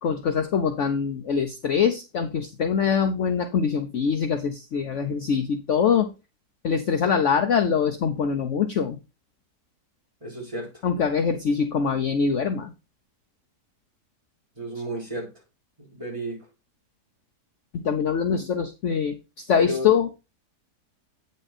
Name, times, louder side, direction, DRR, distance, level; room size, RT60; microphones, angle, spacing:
voice 1, 0.0-6.1 6.6-9.0 10.8-12.7 17.8-19.1 19.5-20.1, left 6 dB, 55° left, 1.0 m, -23 dB
voice 2, 10.2-10.8 14.6-15.4 15.8-16.5 18.3-18.4 19.6-19.9, equal, 20° right, 3.7 m, -33 dB
8.9 x 5.3 x 4.2 m
omnidirectional pair, 1.7 m